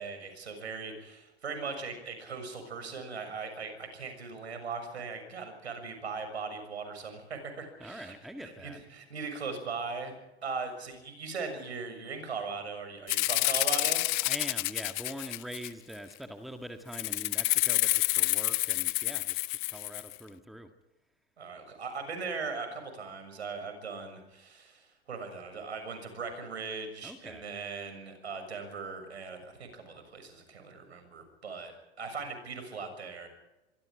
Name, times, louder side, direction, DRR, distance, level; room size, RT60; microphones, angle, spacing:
voice 1, 0.0-10.1 10.4-14.0 21.4-33.3, right 4 dB, 70° right, 7 dB, 6.8 m, -39 dB
voice 2, 7.8-8.8 14.2-20.7 27.0-27.4, equal, ahead, 7 dB, 1.8 m, -43 dB
Rattle (instrument), 13.1-15.9 16.9-20.1, left 24 dB, 45° left, 0.9 m, -28 dB
25.5 x 23.0 x 5.0 m, 0.99 s
figure-of-eight pair, 85°, 33 cm